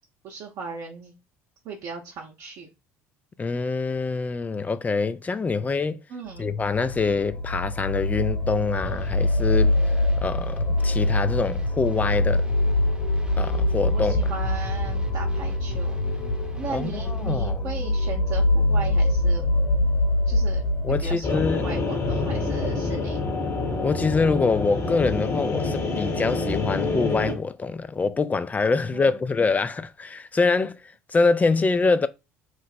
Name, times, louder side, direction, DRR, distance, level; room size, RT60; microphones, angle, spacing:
voice 1, 0.2-1.1 1.6-2.7 6.1-6.5 13.9-16.2 16.6-19.4 20.3-23.2 28.9-29.2, right 5 dB, 50° right, 0.7 m, -37 dB
voice 2, 3.4-6.0 6.4-9.8 10.2-12.4 13.4-14.3 16.7-17.6 20.8-21.7 23.8-32.1, left 4 dB, 20° left, 0.3 m, -25 dB
sound 1, 6.4-21.2, left 1 dB, 65° left, 1.3 m, -24 dB
sound 2, 8.8-17.4, left 1 dB, 10° right, 0.8 m, -40 dB
sound 3, 21.2-27.3, left 3 dB, 35° left, 1.0 m, -27 dB
3.1 x 2.0 x 4.1 m
figure-of-eight pair, 60°, 8 cm